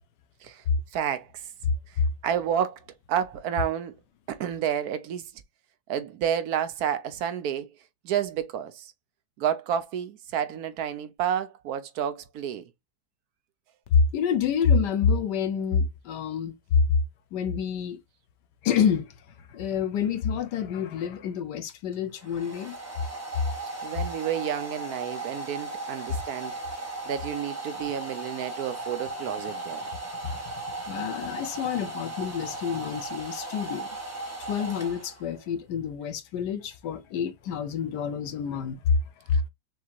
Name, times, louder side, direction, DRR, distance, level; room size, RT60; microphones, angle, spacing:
voice 1, 0.9-1.4 1.9-2.8 3.1-4.0 4.3-5.3 5.9-7.7 8.0-8.9 9.4-12.6 23.8-26.5 27.1-29.8, right 9 dB, 70° right, 1.1 m, -30 dB
voice 2, 13.9-16.5 17.3-18.0 18.6-19.1 19.5-22.8 30.2-30.6 30.9-33.9 34.5-39.0 39.3-39.4, left 6 dB, 80° left, 1.4 m, -27 dB
Domestic sounds home sounds, 21.7-35.4, right 2 dB, 10° right, 1.3 m, -37 dB
6.1 x 2.8 x 2.4 m
omnidirectional pair, 1.8 m